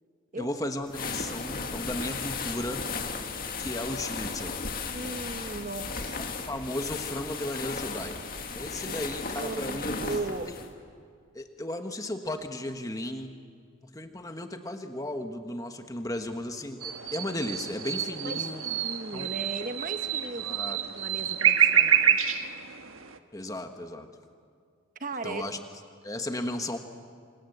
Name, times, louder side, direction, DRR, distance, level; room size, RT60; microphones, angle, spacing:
voice 1, 0.3-2.8 3.6-4.5 6.2-8.2 8.5-10.1 11.3-13.4 13.9-18.6 19.1-19.3 20.4-20.8 23.3-24.1 25.2-25.6 26.0-26.8, left 1 dB, 15° left, 6 dB, 1.5 m, -35 dB
sound 1, 0.9-10.7, left 4 dB, 45° left, 2.2 m, -35 dB
voice 2, 4.9-6.2 8.8-9.0 9.3-10.5 18.2-22.2 25.0-25.4, right 3 dB, 40° right, 8 dB, 1.1 m, -37 dB
sound 2, 16.8-23.2, right 9 dB, 85° right, 1.4 m, -27 dB
28.5 x 25.5 x 8.1 m, 2.2 s
head